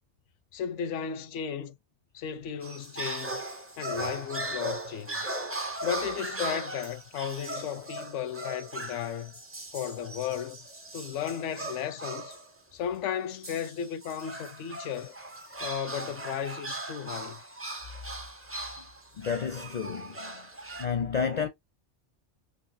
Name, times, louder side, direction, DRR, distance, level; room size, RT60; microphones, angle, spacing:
voice 1, 0.5-1.8 2.1-3.4 3.8-5.3 5.8-9.3 9.7-10.6 10.9-12.4 12.7-15.2 15.6-17.4, left 8 dB, 85° left, 0.9 m, -34 dB
sound 1, 2.6-12.5 13.4-20.9, right 2 dB, 20° right, 0.4 m, -38 dB
voice 2, 19.2-20.5 20.8-21.5, left 6 dB, 50° left, 0.5 m, -31 dB
3.8 x 2.9 x 2.6 m
omnidirectional pair, 1.2 m